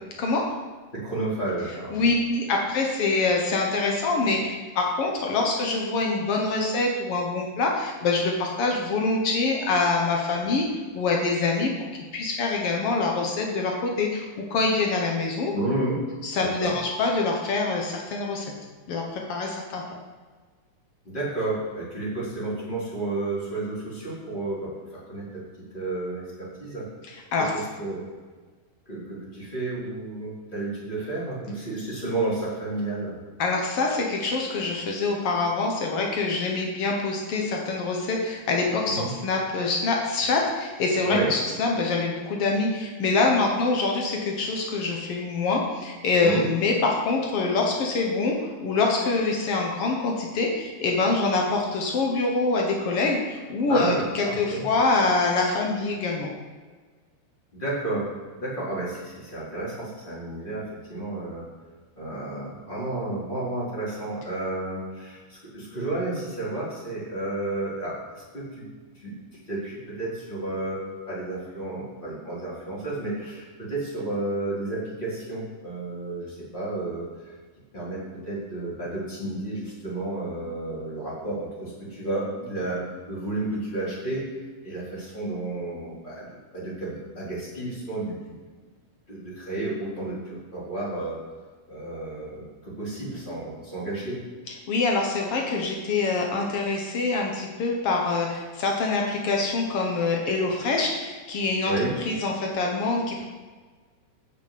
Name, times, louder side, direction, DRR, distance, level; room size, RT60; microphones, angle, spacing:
voice 1, 0.9-2.1 15.5-16.0 16.4-16.7 21.0-26.9 27.4-28.0 28.9-33.2 38.9-39.1 41.1-41.3 46.2-46.4 53.7-54.7 57.5-58.1 58.3-61.4 62.0-68.6 69.0-69.1 69.5-77.4 77.7-84.3 84.6-86.3 86.5-88.3 89.1-91.2 91.7-94.2 101.6-101.9, right 2 dB, 10° left, -7 dB, 3.7 m, -31 dB
voice 2, 1.9-10.6 10.9-11.7 12.1-15.5 16.3-18.5 18.9-19.8 27.3-27.5 33.4-56.3 94.7-101.7 102.1-103.3, left 3 dB, 90° left, 0 dB, 1.2 m, -25 dB
9.1 x 6.8 x 8.4 m, 1.4 s
omnidirectional pair, 4.5 m